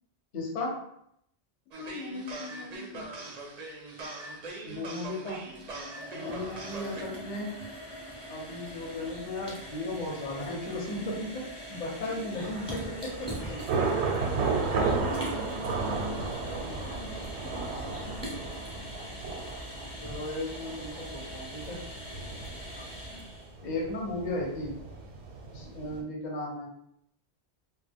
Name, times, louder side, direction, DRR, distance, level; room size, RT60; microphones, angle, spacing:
voice 1, 0.3-0.7 4.6-5.4 6.1-7.5 8.3-11.4 11.7-13.6 20.0-21.8 23.6-24.8 25.5-26.7, left 2 dB, 50° left, -1 dB, 0.7 m, -35 dB
sound 1, 1.7-7.0, right 2 dB, 55° right, 0.5 m, -41 dB
voice 2, 1.8-3.3 6.9-7.3 12.1-12.5 14.9-18.6 22.8-23.3, left 2 dB, 75° left, -2 dB, 0.8 m, -44 dB
sound 2, 5.4-23.5, equal, 5° left, 0.6 m, -42 dB
Thunder / Rain, 12.4-26.0, right 4 dB, 85° right, 0.9 m, -34 dB
2.2 x 2.1 x 3.3 m, 0.74 s
omnidirectional pair, 1.1 m